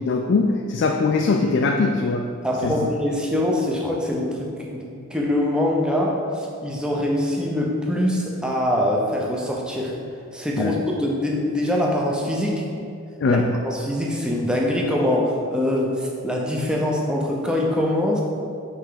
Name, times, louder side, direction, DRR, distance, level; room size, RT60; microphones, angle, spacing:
voice 1, 0.0-2.3 2.6-2.8 10.6-10.8 13.2-13.5, left 3 dB, 55° left, 3 dB, 0.3 m, -21 dB
voice 2, 2.4-9.9 10.3-12.6 13.3-18.2, left 1 dB, 5° right, -2 dB, 0.6 m, -23 dB
5.6 x 3.3 x 5.0 m, 2.4 s
head